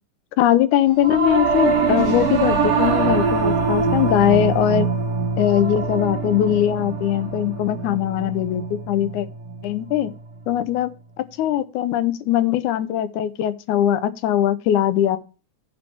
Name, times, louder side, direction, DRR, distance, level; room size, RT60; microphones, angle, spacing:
voice 1, 0.4-4.9 5.4-9.3 9.6-10.1 10.5-10.9 11.2-15.2, left 11 dB, 80° left, 13 dB, 2.2 m, -21 dB
Singing / Musical instrument, 1.0-10.5, right 5 dB, 70° right, 3.3 m, -23 dB
9.8 x 4.2 x 7.1 m, 0.34 s
omnidirectional pair, 3.5 m